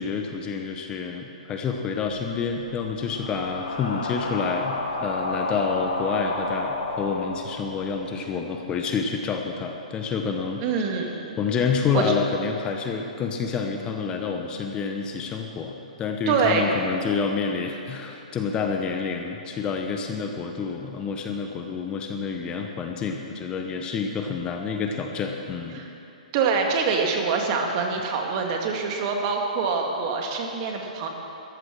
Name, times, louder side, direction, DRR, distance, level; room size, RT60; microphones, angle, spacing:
voice 1, 0.0-10.6 11.4-25.8, left 5 dB, 20° left, 3 dB, 1.0 m, -28 dB
sound 1, 2.2-8.2, left 2 dB, 90° left, 2.6 m, -31 dB
voice 2, 10.6-11.3 11.9-12.1 16.3-16.6 25.7-25.9 26.3-31.1, right 5 dB, 40° right, 2 dB, 2.0 m, -25 dB
13.5 x 11.5 x 6.2 m, 2.9 s
hypercardioid pair, 140°, 4 cm